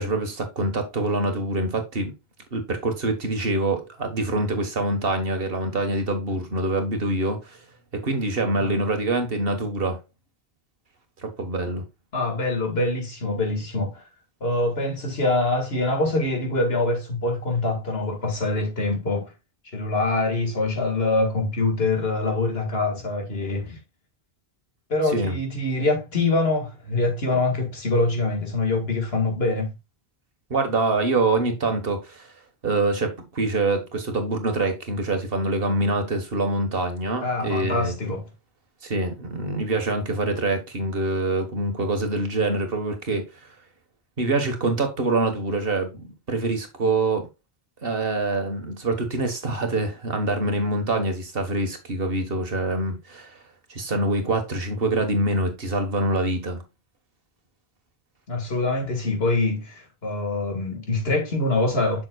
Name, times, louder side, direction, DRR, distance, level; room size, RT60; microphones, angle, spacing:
voice 1, 0.0-2.1 2.5-7.6 7.9-10.0 11.2-11.8 25.1-25.3 30.5-32.3 32.6-37.9 38.8-43.3 44.2-47.3 47.8-53.4 53.7-56.6, right 2 dB, 65° right, 1.7 m, -25 dB
voice 2, 12.1-14.0 14.4-19.3 19.7-23.8 24.9-29.7 37.2-38.3 58.3-62.0, left 2 dB, 75° left, 2.1 m, -24 dB
7.4 x 6.2 x 2.3 m
omnidirectional pair, 1.0 m